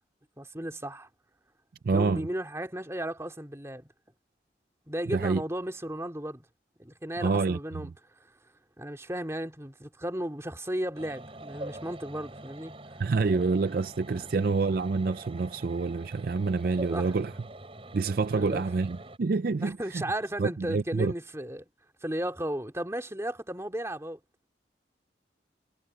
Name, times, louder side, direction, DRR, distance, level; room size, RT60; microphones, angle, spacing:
voice 1, 0.4-1.1 1.9-3.9 4.9-6.4 6.8-7.9 8.2-8.3 8.8-12.8 14.2-14.3 16.9-17.1 18.3-18.6 19.6-21.6 22.0-24.2, right 1 dB, 15° right, 2.7 m, -35 dB
voice 2, 1.8-2.3 5.1-5.4 7.2-7.9 13.0-17.3 17.9-20.0 20.4-21.1, right 4 dB, 55° right, 0.4 m, -27 dB
sound 1, 10.9-19.2, right 1 dB, 30° right, 5.2 m, -44 dB
head